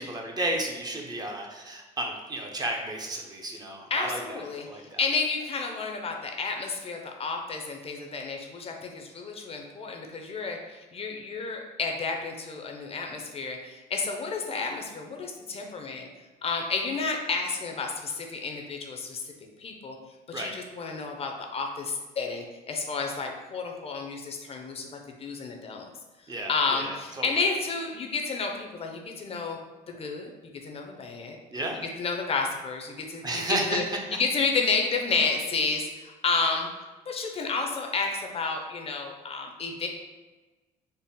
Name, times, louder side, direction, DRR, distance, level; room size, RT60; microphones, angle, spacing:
voice 1, 0.0-4.4 4.7-5.0 20.3-20.5 26.3-27.3 31.5-31.8 33.2-33.8, right 1 dB, 25° right, 1 dB, 0.6 m, -32 dB
voice 2, 3.9-16.1 16.4-19.2 19.6-20.0 20.3-24.9 25.2-25.9 26.5-29.6 29.9-30.3 30.6-31.4 32.0-33.8 34.1-36.7 37.1-39.9, left 4 dB, 35° left, 2 dB, 0.5 m, -31 dB
4.0 x 2.0 x 3.6 m, 1.2 s
cardioid pair, 110°, 17 cm